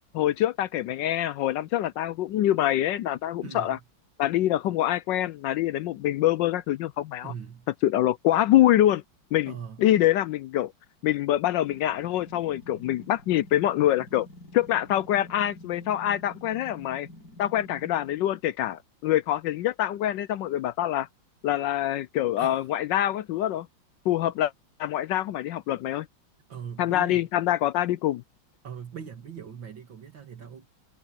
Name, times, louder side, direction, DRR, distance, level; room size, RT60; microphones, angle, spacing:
voice 1, 0.1-3.8 4.2-7.3 7.8-9.0 9.3-9.5 9.8-10.7 11.0-14.3 14.5-17.1 17.4-21.1 21.4-23.7 24.1-24.5 24.8-26.1 26.8-28.2, left 13 dB, 75° left, 1.1 m, -25 dB
voice 2, 3.4-3.8 7.2-7.7 9.4-9.8 22.4-22.7 26.5-27.3 28.6-30.7, right 7 dB, 65° right, 2.7 m, -40 dB
sound 1, 11.7-18.4, left 1 dB, 50° left, 8.0 m, -48 dB
omnidirectional pair, 2.2 m